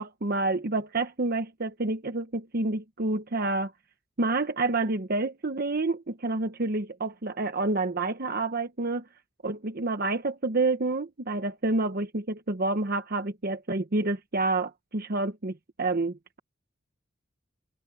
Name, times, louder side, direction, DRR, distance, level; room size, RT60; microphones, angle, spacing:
voice 1, 0.0-3.7 4.2-9.0 9.4-16.4, right 2 dB, 50° right, 1.0 m, -28 dB
open air
head